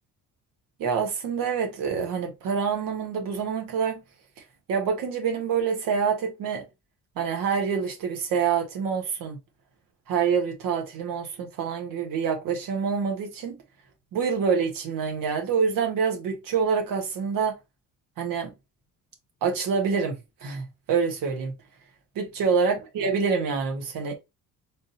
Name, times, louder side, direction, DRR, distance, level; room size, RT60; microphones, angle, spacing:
voice 1, 0.8-4.0 4.7-6.7 7.2-9.4 10.1-13.6 14.1-17.5 18.2-18.5 19.4-21.5 22.1-24.1, right 6 dB, 80° right, 1.2 m, -26 dB
3.6 x 2.6 x 2.7 m
cardioid pair, 115°, 33 cm